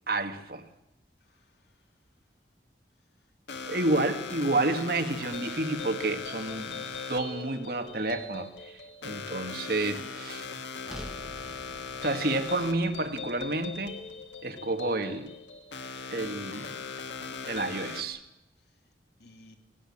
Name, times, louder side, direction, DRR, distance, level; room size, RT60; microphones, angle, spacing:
voice 1, 0.1-0.7 3.6-10.5 12.0-14.0 14.4-15.3 16.1-16.8 17.5-18.2, right 2 dB, 55° right, 1.7 m, -30 dB
voice 2, 1.2-1.9 3.5-4.2 12.1-12.3 18.6-18.7 19.2-19.6, left 2 dB, 70° left, 3.3 m, -55 dB
sound 1, 3.5-18.0, left 5 dB, 90° left, 1.9 m, -39 dB
sound 2, 10.8-15.1, equal, 5° right, 1.7 m, -48 dB
20.5 x 16.5 x 8.7 m
head